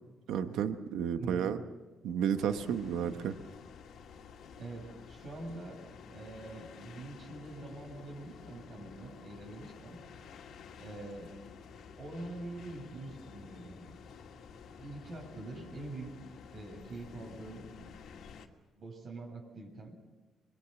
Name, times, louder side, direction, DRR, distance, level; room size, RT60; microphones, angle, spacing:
voice 1, 0.3-1.6 2.0-3.3, right 8 dB, 85° right, 9 dB, 1.2 m, -32 dB
voice 2, 1.2-1.5 4.6-5.8 6.1-10.0 10.8-11.3 12.0-13.9 14.8-16.1 16.5-17.6 18.7-20.0, right 2 dB, 55° right, 0 dB, 7.8 m, -45 dB
sound 1, 2.4-18.5, left 6 dB, 75° left, 2.2 m, -51 dB
25.5 x 21.5 x 7.1 m, 1.2 s
cardioid pair, 90°, 0 cm